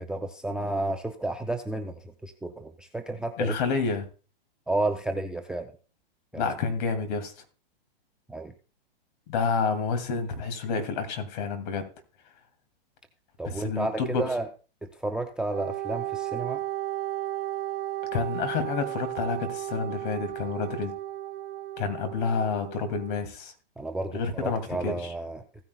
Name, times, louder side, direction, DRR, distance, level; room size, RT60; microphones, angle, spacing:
voice 1, 0.0-3.5 4.7-5.7 6.3-6.5 8.3-8.5 13.4-14.5 15.0-16.6 23.8-25.4, right 2 dB, 5° right, 6 dB, 0.4 m, -31 dB
voice 2, 3.4-4.1 6.3-7.3 9.3-11.9 13.4-14.3 18.1-20.9 21.8-23.5 24.1-25.1, left 5 dB, 55° left, 9 dB, 2.5 m, -29 dB
Wind instrument woodwind instrument, 15.5-23.2, right 14 dB, 75° right, 1.0 m, -34 dB
16.0 x 9.6 x 2.3 m, 0.36 s
hypercardioid pair, 130°, 29 cm